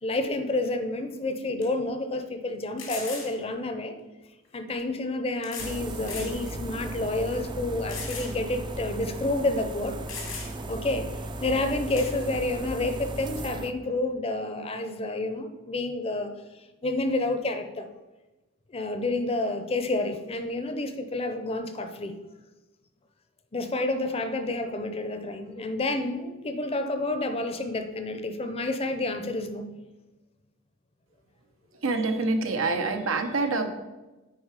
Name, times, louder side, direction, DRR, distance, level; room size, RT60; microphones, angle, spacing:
voice 1, 0.0-3.9 4.5-10.0 10.7-11.1 11.4-16.3 16.8-17.9 18.7-22.1 23.5-29.7, left 2 dB, 30° left, 8 dB, 0.6 m, -29 dB
sound 1, 1.0-1.1 1.6-1.7 2.8-3.3 4.5-4.6 5.4-5.8 6.1-6.4 6.9-7.0 7.9-8.3 8.7-8.8 9.7-9.8 10.1-10.7 12.0-12.1, left 5 dB, 90° left, 2.3 m, -38 dB
sound 2, 5.6-13.7, right 1 dB, 25° right, 0.4 m, -36 dB
voice 2, 31.8-33.7, right 3 dB, 85° right, 5 dB, 1.0 m, -26 dB
8.8 x 4.8 x 4.8 m, 1.1 s
head